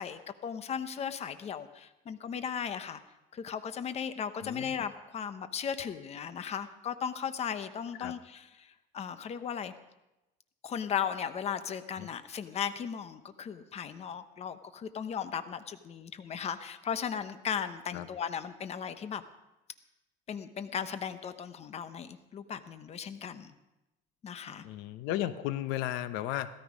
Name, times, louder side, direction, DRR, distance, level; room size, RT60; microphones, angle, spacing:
voice 1, 0.0-3.0 3.3-8.5 8.9-9.7 10.6-19.2 20.3-23.5 24.2-24.6, left 7 dB, 35° left, 11 dB, 0.9 m, -36 dB
voice 2, 4.4-4.8 8.0-8.1 12.0-12.1 17.9-18.1 24.6-26.5, left 13 dB, 80° left, 13 dB, 0.8 m, -34 dB
16.5 x 13.0 x 5.1 m, 0.97 s
cardioid pair, 125°, 19 cm